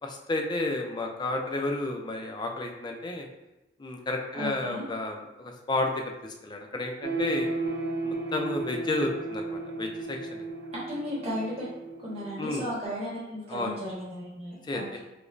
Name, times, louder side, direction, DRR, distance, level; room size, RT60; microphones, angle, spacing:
voice 1, 0.0-3.3 3.8-5.9 6.2-7.5 8.0-10.5 12.4-12.6 13.5-13.8 14.6-15.0, left 2 dB, 20° left, 2 dB, 0.3 m, -32 dB
voice 2, 4.3-4.8 10.7-11.7 12.0-15.0, equal, 30° right, -7 dB, 1.2 m, -35 dB
sound 1, 7.0-12.8, right 2 dB, 60° right, 0.5 m, -34 dB
4.9 x 2.1 x 2.5 m, 1.0 s
head